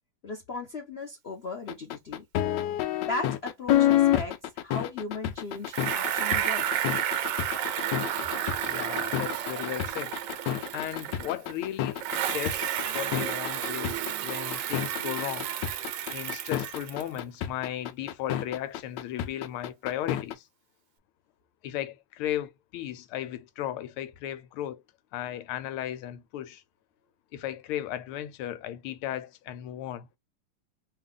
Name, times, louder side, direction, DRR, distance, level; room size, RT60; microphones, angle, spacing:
voice 1, 0.2-2.2 3.0-6.9, left 3 dB, 45° left, 0.8 m, -37 dB
sound 1, 1.7-20.3, left 12 dB, 75° left, 1.1 m, -28 dB
Bicycle, 5.7-11.5 12.0-17.2, right 10 dB, 75° right, 1.3 m, -31 dB
voice 2, 8.7-10.2 10.7-12.0 12.3-12.6 12.9-15.5 16.1-20.4 21.6-24.8 25.1-26.6 27.3-30.1, left 12 dB, 90° left, 1.5 m, -35 dB
3.3 x 2.4 x 3.7 m
omnidirectional pair, 2.3 m